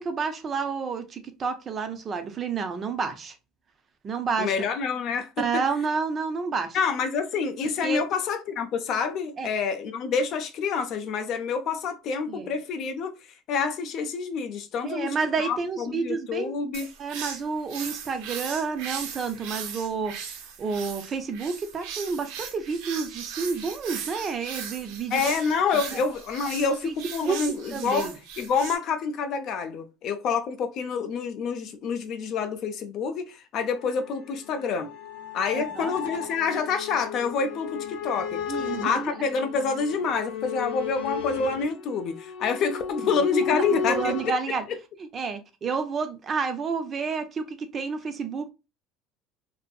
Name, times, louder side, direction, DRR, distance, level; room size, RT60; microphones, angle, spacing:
voice 1, 0.0-3.4 4.0-4.6 5.4-6.8 7.8-8.0 9.4-9.5 12.3-12.5 14.8-16.5 17.0-20.1 20.6-25.2 25.9-26.0 26.8-26.9 27.2-27.4 27.7-28.1 35.5-35.9 38.5-39.1 43.0-43.1 43.5-44.6 45.0-48.5, right 5 dB, 25° right, 0.4 m, -30 dB
voice 2, 4.4-5.6 6.7-13.1 13.5-16.9 25.1-34.9 35.3-38.4 38.8-44.1, left 5 dB, 45° left, 0.4 m, -27 dB
sound 1, 16.7-28.8, right 7 dB, 80° right, 0.6 m, -38 dB
sound 2, 33.6-44.3, left 7 dB, 75° left, 0.7 m, -34 dB
2.6 x 2.5 x 2.2 m
cardioid pair, 155°, 0 cm